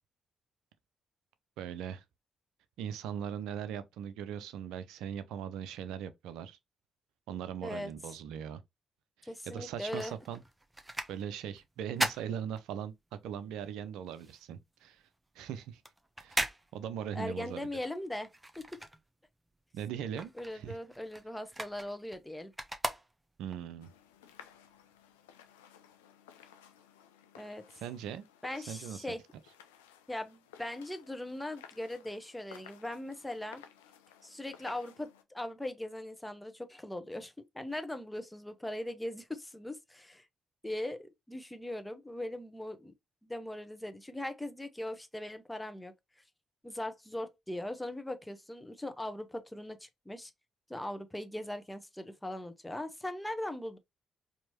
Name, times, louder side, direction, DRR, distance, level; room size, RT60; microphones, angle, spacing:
voice 1, 1.6-2.0 2.8-6.6 7.3-8.6 9.5-10.4 11.1-12.9 13.2-15.0 15.4-15.8 16.2-17.7 19.7-20.8 23.4-23.9 27.7-28.2 28.7-29.0, right 9 dB, 75° right, 0.5 m, -40 dB
voice 2, 9.2-10.1 17.1-18.6 20.3-22.5 27.3-27.7 28.4-29.2 30.1-33.6 34.2-40.3 40.6-42.9 43.2-45.9 46.6-50.3 50.7-53.8, left 1 dB, 10° left, 1.0 m, -40 dB
sound 1, 9.5-13.2 13.5-19.5 19.8-23.6 24.1-24.2, right 1 dB, 15° right, 0.9 m, -39 dB
sound 2, 23.8-35.2, left 9 dB, 90° left, 0.4 m, -57 dB
4.4 x 2.9 x 2.9 m
hypercardioid pair, 45°, 0 cm